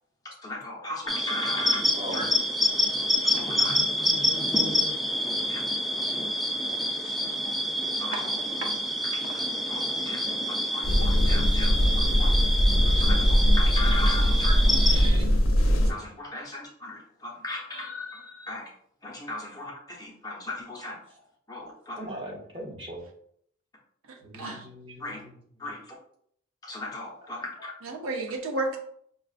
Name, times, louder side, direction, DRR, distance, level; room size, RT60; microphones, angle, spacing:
voice 1, 0.2-1.8 2.1-2.2 3.2-3.8 5.5-5.6 7.4-7.6 8.0-8.4 9.1-10.2 10.5-12.3 12.9-14.5 15.9-18.7 19.0-21.0 21.5-22.0 24.4-24.5 25.0-25.2 25.6-26.0 26.6-27.7, left 2 dB, 20° left, -2 dB, 0.8 m, -37 dB
sound 1, 1.1-15.1, left 1 dB, ahead, 0.4 m, -27 dB
voice 2, 3.5-5.0 14.2-15.3 22.0-23.0 24.2-25.7, equal, 25° right, -2 dB, 1.0 m, -41 dB
sound 2, 10.8-15.9, equal, 85° left, 0.6 m, -21 dB
voice 3, 27.8-28.8, right 2 dB, 80° right, 3 dB, 0.7 m, -32 dB
5.7 x 2.4 x 2.4 m, 0.66 s
head